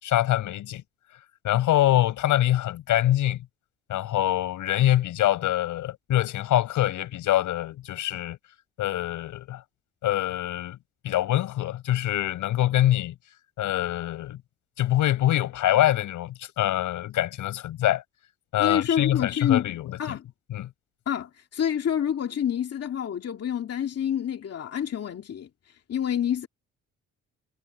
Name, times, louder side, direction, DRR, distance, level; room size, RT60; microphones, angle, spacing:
voice 1, 0.0-0.8 1.4-3.4 3.9-8.4 8.8-9.6 10.0-10.8 11.0-13.1 13.6-14.4 14.8-18.0 18.5-19.9 20.5-20.7, left 13 dB, 80° left, 5.5 m, -24 dB
voice 2, 18.6-19.7 20.0-20.3 21.1-26.5, left 9 dB, 55° left, 2.4 m, -28 dB
cardioid pair, 90°, 30 cm